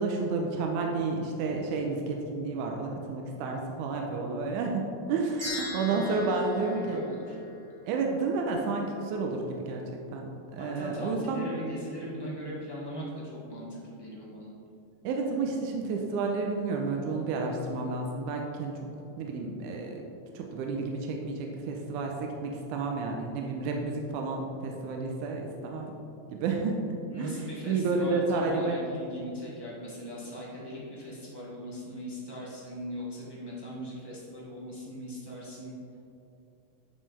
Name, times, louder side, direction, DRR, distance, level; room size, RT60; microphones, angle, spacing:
voice 1, 0.0-7.0 7.9-9.8 10.1-11.5 15.0-18.8 19.2-20.0 20.3-25.9 26.3-27.3 27.7-28.8, right 3 dB, 85° right, 1 dB, 2.1 m, -31 dB
sound 1, 5.4-7.9, left 2 dB, 15° right, 0.9 m, -40 dB
voice 2, 5.9-7.3 10.6-14.5 27.1-35.7, equal, 15° left, -8 dB, 0.7 m, -39 dB
10.5 x 5.2 x 3.3 m, 2.7 s
omnidirectional pair, 3.6 m